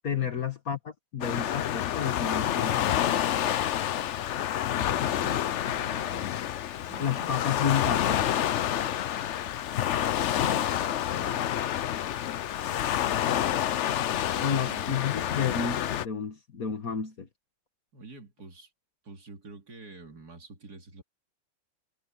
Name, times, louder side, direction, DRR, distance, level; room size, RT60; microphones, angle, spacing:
voice 1, 0.0-3.2 7.0-8.2 14.4-17.3, left 7 dB, 55° left, 1.9 m, -31 dB
Waves surf, 1.2-16.1, left 11 dB, 70° left, 0.6 m, -28 dB
voice 2, 4.7-6.4 6.9-7.4 9.2-9.5 11.1-11.5 14.2-15.1 17.9-18.7 19.0-21.0, right 3 dB, 60° right, 3.2 m, -47 dB
omnidirectional pair, 1.9 m